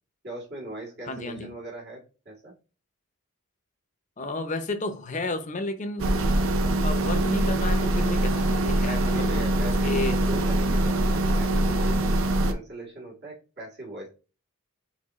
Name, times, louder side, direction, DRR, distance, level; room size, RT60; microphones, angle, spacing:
voice 1, 0.2-2.0 2.3-2.5 8.8-12.0 12.5-14.1, right 2 dB, 50° right, 2.0 m, -40 dB
voice 2, 1.1-1.5 4.2-6.1 6.8-9.3 9.6-10.2, left 2 dB, 35° left, 0.6 m, -32 dB
sound 1, 6.0-12.5, right 1 dB, 65° right, 0.6 m, -23 dB
4.5 x 3.8 x 3.0 m
head